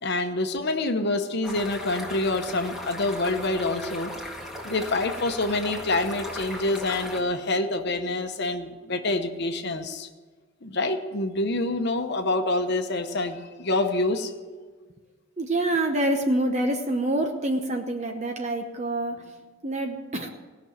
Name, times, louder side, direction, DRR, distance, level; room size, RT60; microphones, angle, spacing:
voice 1, 0.0-4.1 4.6-10.1 10.6-14.3, left 2 dB, 55° left, 6 dB, 0.9 m, -26 dB
sound 1, 1.4-7.2, left 1 dB, ahead, 1.7 m, -37 dB
voice 2, 15.4-19.4 19.6-20.3, right 1 dB, 35° right, 4 dB, 0.9 m, -26 dB
18.0 x 6.2 x 9.2 m, 1.4 s
head